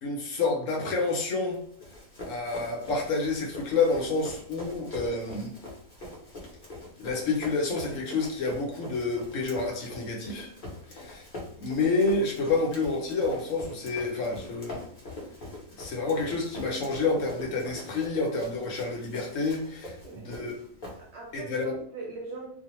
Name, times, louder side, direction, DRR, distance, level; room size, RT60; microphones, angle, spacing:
voice 1, 0.0-1.6 2.3-5.5 7.0-10.5 10.9-11.2 11.6-14.8 15.8-20.6 21.3-21.7, left 3 dB, 65° left, 0 dB, 0.9 m, -29 dB
Run, 1.5-21.4, left 1 dB, 45° left, 0.7 m, -43 dB
voice 2, 20.0-20.4 20.9-22.5, right 3 dB, 65° right, -2 dB, 0.7 m, -41 dB
2.4 x 2.1 x 2.9 m, 0.63 s
omnidirectional pair, 1.5 m